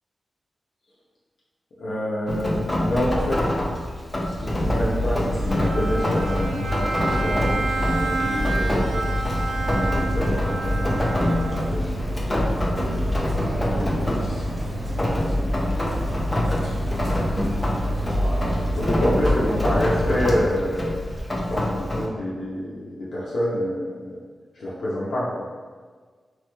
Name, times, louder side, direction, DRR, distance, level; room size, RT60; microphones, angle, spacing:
voice 1, 1.8-3.5 4.2-9.1 9.7-13.2 13.7-14.5 14.9-15.7 17.7-18.0 18.7-21.0 21.5-24.2 24.5-25.4, left 1 dB, 80° left, -8 dB, 0.6 m, -28 dB
Rain, 2.3-22.1, left 1 dB, 20° left, 0.4 m, -27 dB
sound 1, 4.5-20.4, equal, 60° right, 0.8 m, -27 dB
Bowed string instrument, 5.6-12.0, right 3 dB, 80° right, 0.3 m, -30 dB
3.0 x 3.0 x 2.2 m, 1.5 s
wide cardioid pair, 135°, 0 cm